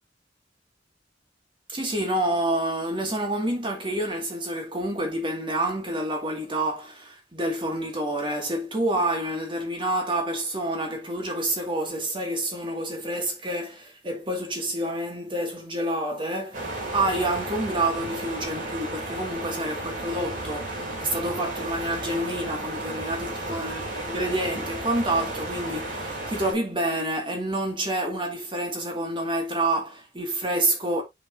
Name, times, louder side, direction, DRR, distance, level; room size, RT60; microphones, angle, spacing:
voice 1, 1.7-31.0, right 1 dB, 25° right, 2.2 m, -28 dB
sound 1, 16.5-26.5, right 1 dB, 45° right, 3.1 m, -33 dB
7.4 x 6.2 x 2.7 m
head